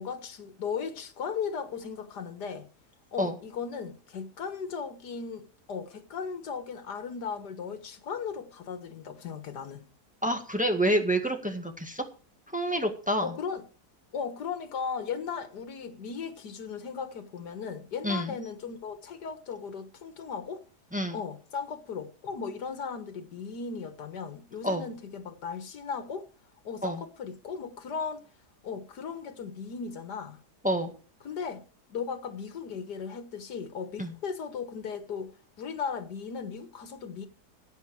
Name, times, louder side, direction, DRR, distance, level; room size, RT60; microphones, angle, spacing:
voice 1, 0.0-2.7 3.1-9.8 13.2-13.6 14.1-20.6 21.1-26.3 26.6-28.3 28.6-30.4 31.2-31.6 31.9-35.3 35.6-37.3, left 6 dB, 85° left, 2.0 m, -37 dB
voice 2, 10.2-12.0 12.5-13.3 18.0-18.4 20.9-21.2 24.6-24.9 26.8-27.0 30.6-30.9 34.0-34.1, right 1 dB, 5° right, 1.8 m, -28 dB
15.0 x 9.2 x 4.8 m
omnidirectional pair, 1.7 m